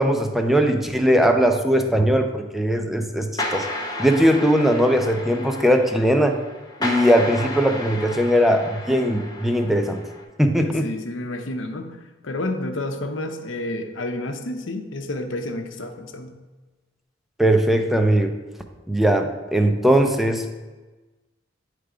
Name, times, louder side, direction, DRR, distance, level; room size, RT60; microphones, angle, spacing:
voice 1, 0.0-3.7 4.0-6.4 6.8-10.0 10.4-10.9 17.4-18.3 18.9-20.4, equal, ahead, 5 dB, 0.5 m, -19 dB
sound 1, 3.4-10.2, left 1 dB, 20° left, 0.8 m, -32 dB
voice 2, 10.6-12.0 12.2-16.3, left 1 dB, 85° left, 5 dB, 0.8 m, -30 dB
9.3 x 3.4 x 5.0 m, 1.2 s
head